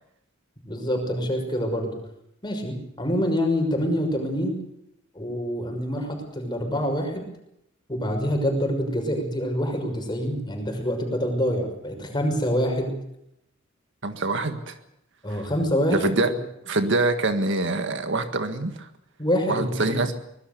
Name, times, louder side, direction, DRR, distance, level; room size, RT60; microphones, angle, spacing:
voice 1, 0.7-1.9 2.4-4.6 5.1-7.2 7.9-13.0 15.2-16.4 19.2-20.0, equal, 20° left, 4 dB, 6.1 m, -26 dB
voice 2, 14.0-14.8 15.3-15.4 15.9-16.3 16.7-18.9 19.5-20.1, right 2 dB, 65° right, 8 dB, 1.8 m, -25 dB
24.5 x 20.5 x 6.8 m, 0.78 s
head